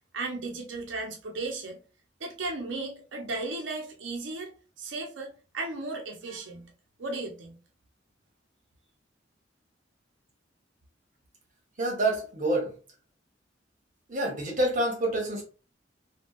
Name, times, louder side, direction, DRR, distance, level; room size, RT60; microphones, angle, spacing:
voice 1, 0.1-1.8 2.2-6.7 7.0-7.6, right 3 dB, 85° right, 0.7 m, -35 dB
voice 2, 11.8-12.7 14.1-15.4, right 1 dB, 45° right, 1.1 m, -27 dB
3.4 x 2.3 x 2.4 m
head